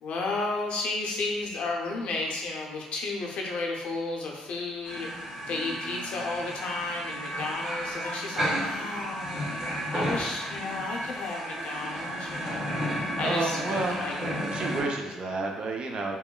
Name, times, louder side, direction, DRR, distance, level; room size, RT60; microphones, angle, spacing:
voice 1, 0.0-5.1 5.5-9.4 9.9-12.7 13.2-14.1, left 3 dB, 70° left, 0 dB, 0.5 m, -33 dB
sound 1, 4.8-14.8, equal, 35° right, 1.2 m, -33 dB
voice 2, 5.5-6.4 13.2-14.0 14.5-16.2, right 3 dB, 50° right, 1 dB, 0.4 m, -32 dB
2.9 x 2.1 x 2.2 m, 1.1 s
cardioid pair, 80°, 2 cm